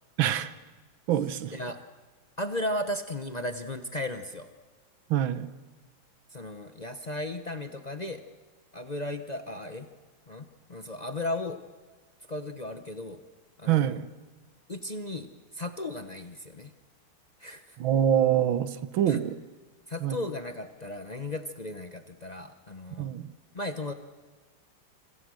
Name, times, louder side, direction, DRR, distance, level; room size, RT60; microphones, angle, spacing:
voice 1, 0.2-0.5 1.1-1.6 5.1-5.5 13.7-14.1 17.8-19.4 20.0-20.2 23.0-23.3, right 10 dB, 75° right, 13 dB, 1.7 m, -25 dB
voice 2, 2.4-4.5 6.3-8.2 8.7-9.9 10.3-11.6 12.3-13.2 13.6-14.0 14.7-15.3 15.5-16.7 17.4-17.8 19.1-19.2 19.9-23.1 23.5-23.9, left 1 dB, 40° left, 7 dB, 0.5 m, -35 dB
26.5 x 25.5 x 6.4 m, 1.3 s
omnidirectional pair, 2.3 m